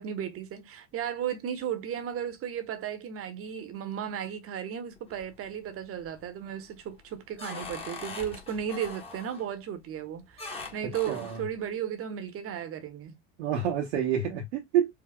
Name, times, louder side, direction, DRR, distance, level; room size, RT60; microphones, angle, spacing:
voice 1, 0.0-13.1, right 9 dB, 40° right, 1.1 m, -35 dB
sound 1, 5.0-5.6 6.0-6.5 6.9-9.5 10.4-11.5, left 3 dB, 15° left, 1.6 m, -42 dB
voice 2, 11.1-11.4 13.4-14.9, right 8 dB, 65° right, 1.1 m, -28 dB
5.0 x 2.7 x 2.3 m
hypercardioid pair, 70°, 35 cm